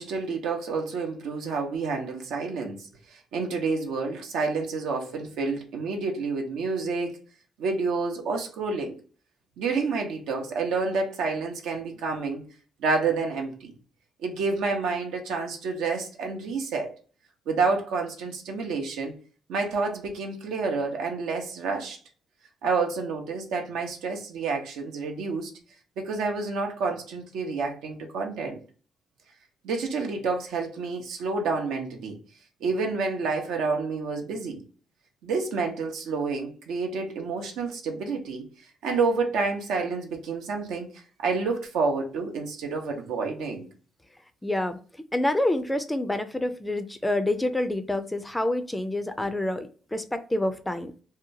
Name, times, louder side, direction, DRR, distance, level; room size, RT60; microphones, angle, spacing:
voice 1, 0.0-7.2 7.6-8.9 9.6-12.4 12.8-13.7 14.2-16.9 17.5-19.1 19.5-22.0 22.6-25.5 26.0-28.6 29.6-32.2 32.6-34.6 35.2-43.7 49.2-49.3, right 4 dB, 85° right, 0.6 m, -29 dB
voice 2, 44.4-44.8 45.1-50.9, left 1 dB, 10° left, 0.3 m, -27 dB
2.8 x 2.2 x 2.6 m
cardioid pair, 90°, 0 cm